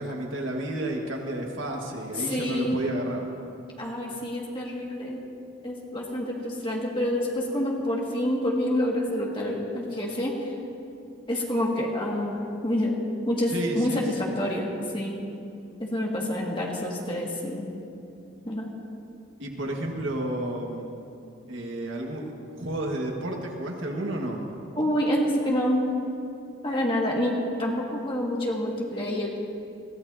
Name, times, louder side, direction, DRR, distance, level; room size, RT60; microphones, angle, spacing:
voice 1, 0.0-3.3 13.5-14.3 19.4-20.9 21.5-22.3 22.6-24.4, right 1 dB, 75° right, 0 dB, 1.7 m, -31 dB
voice 2, 2.2-2.9 3.8-5.2 5.6-10.5 11.3-13.0 13.3-15.2 15.8-17.6 18.5-18.7 24.8-25.9 26.6-29.3, left 1 dB, 25° left, -3 dB, 2.0 m, -27 dB
22.0 x 15.5 x 2.8 m, 2.7 s
head